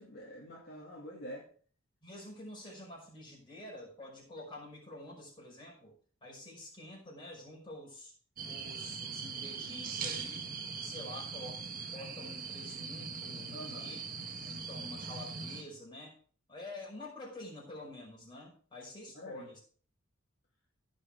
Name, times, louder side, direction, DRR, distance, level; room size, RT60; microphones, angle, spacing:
voice 1, 0.0-1.5 13.5-13.9 19.1-19.5, equal, 45° left, -4 dB, 2.5 m, -46 dB
voice 2, 2.0-5.9 6.2-8.1 8.4-10.4 10.8-11.6 11.9-14.0 14.4-16.1 16.5-19.6, left 1 dB, 20° left, -3 dB, 5.4 m, -48 dB
sound 1, 8.4-15.6, right 5 dB, 40° right, 1.6 m, -41 dB
16.0 x 5.6 x 4.9 m, 0.43 s
head